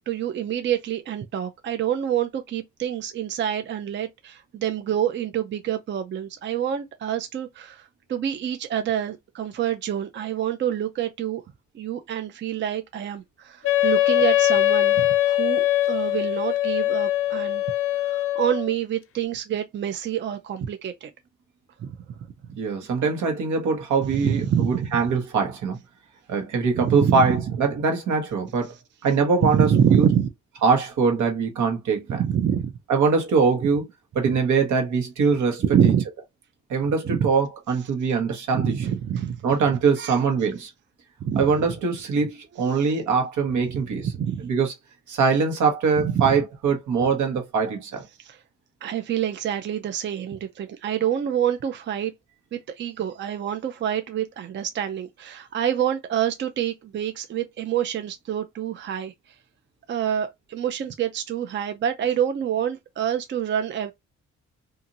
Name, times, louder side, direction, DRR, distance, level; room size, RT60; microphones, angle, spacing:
voice 1, 0.1-11.4 11.7-17.6 18.0-21.1 21.8-22.0 24.0-24.9 26.7-27.3 29.4-30.3 32.1-32.7 35.6-36.0 37.0-37.3 38.5-39.5 40.0-40.2 41.2-41.7 42.6-42.9 43.9-44.5 46.0-46.3 48.2-48.4 48.8-52.1 52.5-59.4 59.9-63.9, right 9 dB, 40° right, 0.5 m, -26 dB
Wind instrument woodwind instrument, 13.6-18.7, left 14 dB, 50° left, 0.5 m, -22 dB
voice 2, 22.6-25.8 26.3-28.7 29.0-30.1 30.6-32.2 32.9-33.8 34.1-35.9 36.7-38.7 39.4-40.7 41.4-44.1 44.4-44.7 45.1-48.0, right 5 dB, 75° right, 1.2 m, -23 dB
2.8 x 2.6 x 2.6 m
cardioid pair, 90°, 30 cm